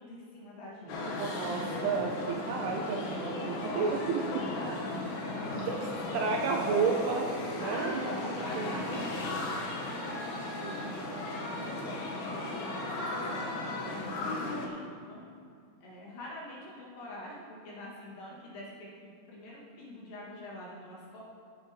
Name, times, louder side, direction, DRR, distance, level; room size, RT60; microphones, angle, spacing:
voice 1, 0.0-1.2 3.3-4.9 5.2-5.7 6.0-6.7 7.6-9.5 11.5-15.3 15.8-21.2, left 1 dB, 60° left, -5 dB, 3.1 m, -45 dB
voice 2, 0.8-4.4 5.5-5.7 6.1-7.3 7.6-9.0 10.6-11.0, right 5 dB, 75° right, 2 dB, 2.6 m, -32 dB
sound 1, 0.9-14.7, left 2 dB, 75° left, 1.8 m, -36 dB
15.0 x 6.9 x 4.3 m, 2.4 s
omnidirectional pair, 5.1 m